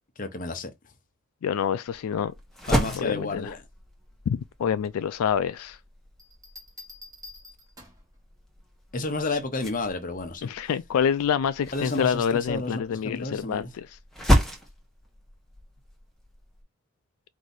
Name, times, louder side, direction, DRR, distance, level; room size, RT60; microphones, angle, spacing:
voice 1, 0.2-0.7 2.7-3.6 8.9-10.5 11.7-13.7, left 2 dB, 35° left, 0.8 m, -31 dB
voice 2, 1.4-2.3 2.7-3.6 4.3-5.8 10.4-14.0, left 7 dB, 80° left, 0.3 m, -27 dB
sound 1, 1.9-16.6, equal, ahead, 1.0 m, -32 dB
Bell, 6.2-8.1 9.8-10.1, left 2 dB, 15° right, 1.3 m, -47 dB
4.7 x 2.7 x 3.9 m
head